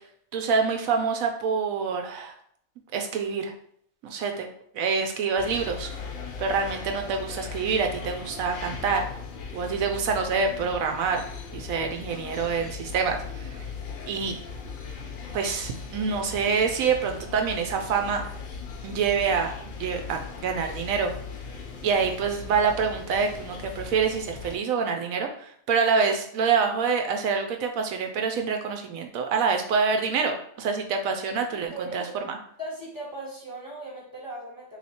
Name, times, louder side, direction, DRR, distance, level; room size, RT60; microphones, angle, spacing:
voice 1, 0.3-2.3 2.9-3.5 4.0-4.5 4.7-5.9 6.4-9.0 9.5-11.2 11.5-13.7 14.1-14.4 15.3-18.2 18.8-19.5 19.8-21.1 21.8-32.4, right 5 dB, 75° right, 4 dB, 1.0 m, -26 dB
sound 1, 5.4-24.6, left 5 dB, 60° left, 0.5 m, -39 dB
voice 2, 31.7-32.2 32.6-34.8, right 1 dB, 15° left, -5 dB, 0.8 m, -38 dB
3.2 x 2.7 x 4.2 m, 0.65 s
omnidirectional pair, 1.5 m